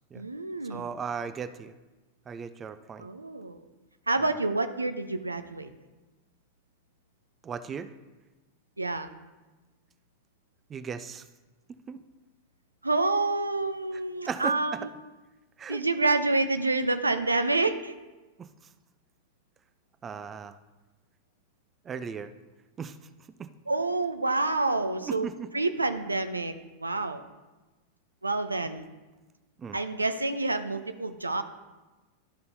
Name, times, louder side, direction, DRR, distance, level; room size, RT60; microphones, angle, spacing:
voice 1, 0.1-0.9 3.0-3.6 4.1-5.7 8.8-9.1 12.8-14.9 15.7-18.0 23.7-26.5 26.8-27.2 28.2-28.9 29.7-31.4, right 2 dB, 80° right, 9 dB, 0.5 m, -28 dB
voice 2, 0.7-1.7 2.3-3.1 7.4-7.9 10.7-11.3 11.9-12.0 13.9-14.0 14.3-14.8 15.6-15.8 18.4-18.5 20.0-20.6 21.8-22.3 22.8-23.0 23.4-23.5 25.0-25.5 29.6-29.8, right 6 dB, 20° right, 12 dB, 0.4 m, -37 dB
12.5 x 5.4 x 2.7 m, 1.2 s
figure-of-eight pair, 90°, 0 cm